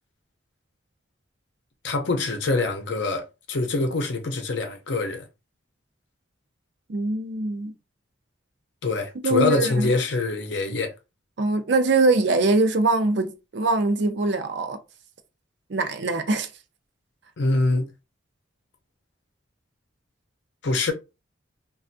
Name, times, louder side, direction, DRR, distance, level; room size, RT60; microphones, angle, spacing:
voice 1, 1.8-5.3 8.8-10.9 17.4-17.9 20.6-20.9, left 3 dB, 60° left, 0.6 m, -24 dB
voice 2, 6.9-7.7 9.2-9.9 11.4-14.8 15.7-16.5, right 3 dB, 60° right, 0.5 m, -22 dB
3.3 x 2.3 x 2.6 m
head